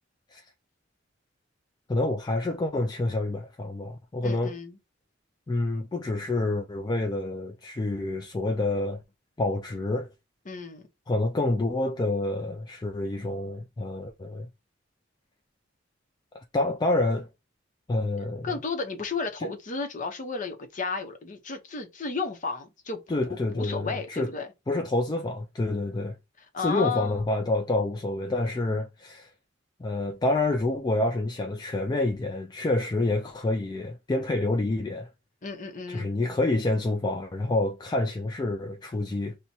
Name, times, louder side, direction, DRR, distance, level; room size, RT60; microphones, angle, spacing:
voice 1, 1.9-4.6 5.5-9.0 9.4-10.1 11.1-14.5 16.3-17.3 17.9-18.6 19.4-19.5 23.1-24.3 24.7-26.2 26.6-29.3 29.8-35.1 35.9-39.4, left 2 dB, 20° left, 0.3 m, -28 dB
voice 2, 4.2-4.8 10.5-10.8 18.4-24.5 26.5-27.2 35.4-36.1, left 4 dB, 40° left, 0.7 m, -33 dB
5.8 x 2.2 x 2.7 m
head